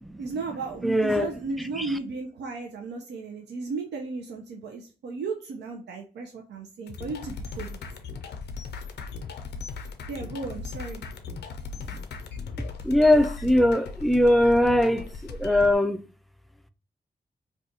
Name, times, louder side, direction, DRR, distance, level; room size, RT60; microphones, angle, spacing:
voice 1, 0.2-7.8 10.1-11.0, right 3 dB, 80° right, 0.5 m, -35 dB
voice 2, 0.8-1.3 1.6-2.0 11.9-12.0 12.6-16.1, left 1 dB, ahead, 0.4 m, -22 dB
sound 1, 6.9-15.7, left 4 dB, 85° left, 0.4 m, -38 dB
2.5 x 2.3 x 4.1 m
supercardioid pair, 45°, 17 cm